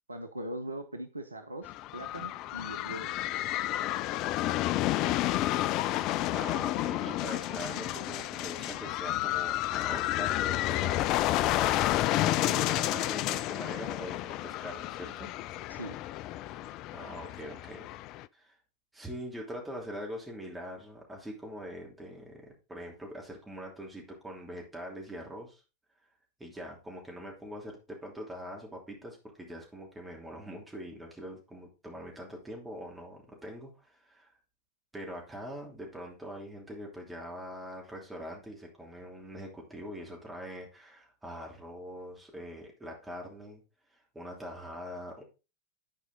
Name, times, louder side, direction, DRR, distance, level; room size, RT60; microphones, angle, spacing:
voice 1, 0.1-3.1 15.7-16.0, right 1 dB, 80° right, 0.7 m, -40 dB
sound 1, 1.6-18.2, left 15 dB, 40° left, 0.3 m, -31 dB
voice 2, 4.5-5.2 6.3-11.1 11.4-15.3 16.4-17.9 18.3-18.6 18.9-25.6 26.4-34.3 34.9-43.6 43.9-45.2, equal, 10° right, 3.0 m, -43 dB
10.0 x 4.8 x 3.9 m
figure-of-eight pair, 90°, 0 cm